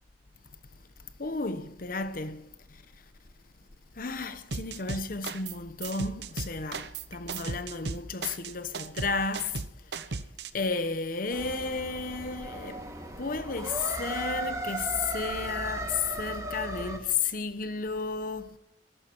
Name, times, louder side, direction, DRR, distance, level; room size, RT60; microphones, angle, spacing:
voice 1, 1.2-2.4 4.0-9.6 10.5-12.8 13.2-18.6, left 4 dB, 55° left, 1.0 m, -33 dB
sound 1, 4.5-5.6 5.8-10.5, right 4 dB, 70° right, 0.9 m, -36 dB
sound 2, 11.3-17.0, right 1 dB, 20° right, 2.0 m, -36 dB
13.5 x 11.5 x 9.0 m
head